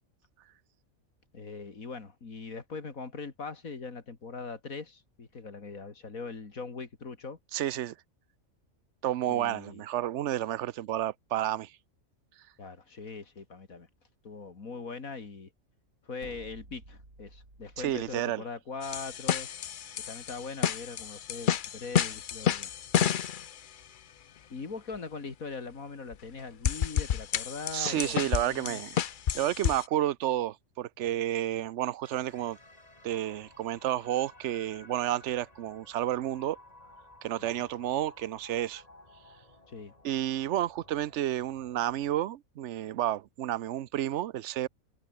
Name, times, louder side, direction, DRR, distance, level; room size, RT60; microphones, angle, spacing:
voice 1, 1.3-7.4 9.3-9.8 12.6-13.9 14.2-15.5 16.0-19.5 20.1-22.7 24.5-28.8 37.4-37.6 39.7-39.9, left 4 dB, 80° left, 3.1 m, -41 dB
voice 2, 7.5-7.9 9.0-11.7 17.8-18.4 27.7-29.0 29.3-32.6 33.0-36.6 37.2-38.8 40.0-44.7, right 12 dB, 65° right, 0.9 m, -31 dB
sound 1, 16.2-18.3, right 2 dB, 90° right, 8.3 m, -52 dB
sound 2, 18.8-23.6 26.1-26.2 26.6-29.9, left 9 dB, 50° left, 0.6 m, -30 dB
sound 3, 32.0-42.1, left 2 dB, 30° left, 3.2 m, -55 dB
omnidirectional pair, 1.4 m